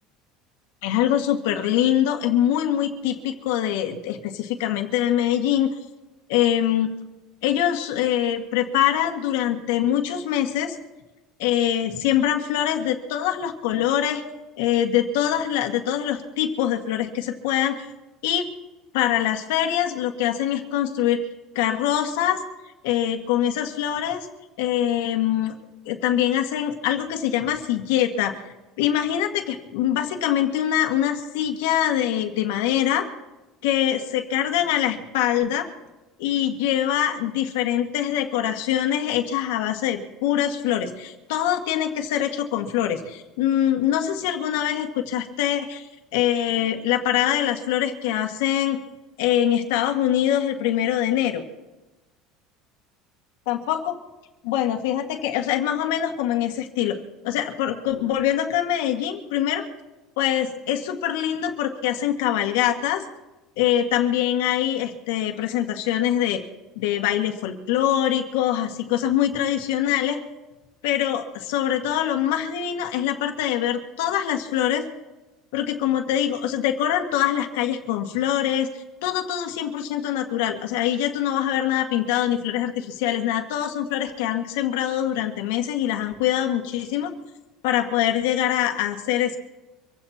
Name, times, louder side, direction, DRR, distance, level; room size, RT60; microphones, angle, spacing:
voice 1, 0.8-5.7 6.3-6.9 7.4-10.8 11.4-14.2 14.6-17.8 18.2-18.5 18.9-21.2 21.6-22.4 22.8-24.3 24.6-25.5 25.9-28.4 28.8-33.1 33.6-35.7 36.2-48.8 49.2-51.4 53.5-54.0 54.4-57.0 57.2-59.6 60.2-63.0 63.6-66.4 66.8-70.2 70.8-74.9 75.5-87.1 87.6-89.4, left 11 dB, 90° left, 4 dB, 1.8 m, -24 dB
25.0 x 16.0 x 2.9 m, 1.1 s
cardioid pair, 150°, 0 cm